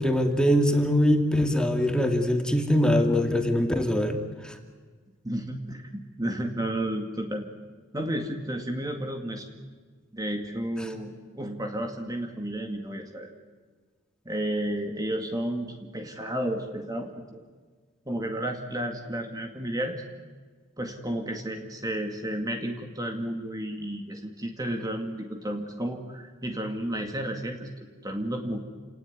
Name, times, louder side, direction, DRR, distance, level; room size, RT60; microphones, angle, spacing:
voice 1, 0.0-4.2 4.4-4.5, equal, 5° left, 4 dB, 2.5 m, -23 dB
voice 2, 5.2-7.5 7.9-9.5 10.1-13.3 14.3-17.4 18.1-20.0 20.8-27.7 28.0-28.6, right 1 dB, 20° right, 3 dB, 2.2 m, -32 dB
29.5 x 18.5 x 9.6 m, 1.5 s
head